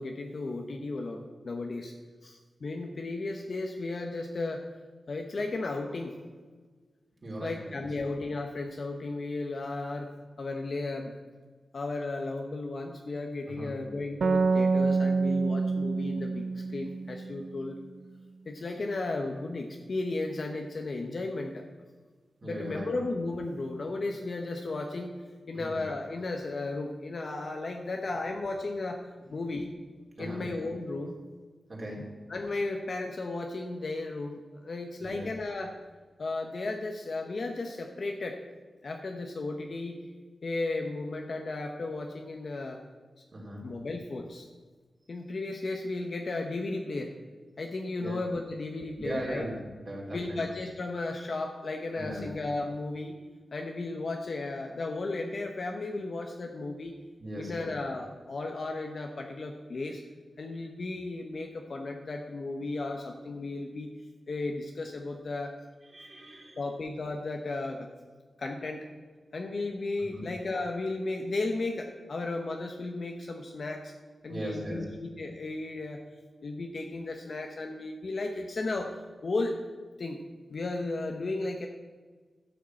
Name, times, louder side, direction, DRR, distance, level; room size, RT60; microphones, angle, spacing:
voice 1, 0.0-1.9 2.2-4.6 5.1-6.1 7.4-10.1 10.4-11.1 11.7-17.7 18.5-21.6 22.4-25.2 25.5-29.0 29.3-29.7 30.2-31.1 32.3-35.7 36.2-38.4 38.8-40.0 40.4-42.8 43.6-44.5 45.1-47.1 47.6-49.5 50.1-53.1 53.5-56.9 57.4-60.0 60.4-63.9 64.3-65.6 66.6-67.9 68.4-68.9 69.3-73.9 74.2-76.0 76.4-79.0 79.2-79.6 80.0-80.2 80.5-81.7, left 2 dB, 50° left, 3 dB, 1.0 m, -34 dB
voice 2, 7.2-7.7 13.5-13.7 22.4-22.9 25.5-25.8 30.2-30.5 31.7-32.2 35.0-35.3 43.3-43.7 48.0-48.2 49.0-49.6 49.9-50.4 52.0-52.2 57.2-57.7 65.9-66.6 70.1-70.2 74.3-74.8, right 1 dB, 35° right, -2 dB, 3.5 m, -38 dB
sound 1, 14.2-17.7, right 4 dB, 70° right, 0.6 m, -27 dB
13.0 x 6.7 x 7.6 m, 1.4 s
wide cardioid pair, 145°, 0 cm